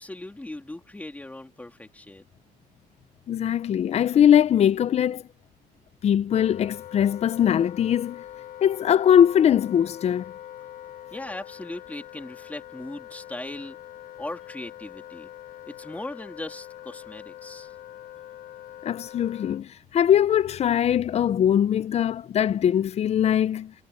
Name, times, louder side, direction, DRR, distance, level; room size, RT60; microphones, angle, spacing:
voice 1, 0.0-2.2 11.1-13.8 14.2-15.3 15.7-17.7, left 2 dB, 10° left, 3.1 m, -38 dB
voice 2, 3.3-5.2 6.0-8.2 8.6-10.2 18.8-23.7, left 9 dB, 45° left, 0.6 m, -21 dB
Wind instrument woodwind instrument, 6.3-19.7, left 12 dB, 65° left, 1.3 m, -43 dB
cardioid pair, 120°, 15 cm